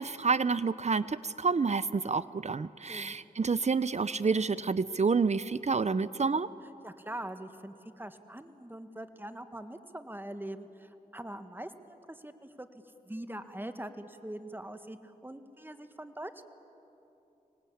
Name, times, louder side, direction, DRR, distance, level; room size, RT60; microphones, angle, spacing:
voice 1, 0.0-6.5, right 4 dB, 50° right, 16 dB, 0.6 m, -29 dB
voice 2, 6.8-16.5, right 1 dB, 15° right, 9 dB, 1.6 m, -43 dB
25.0 x 19.5 x 8.6 m, 2.9 s
cardioid pair, 45°, 15 cm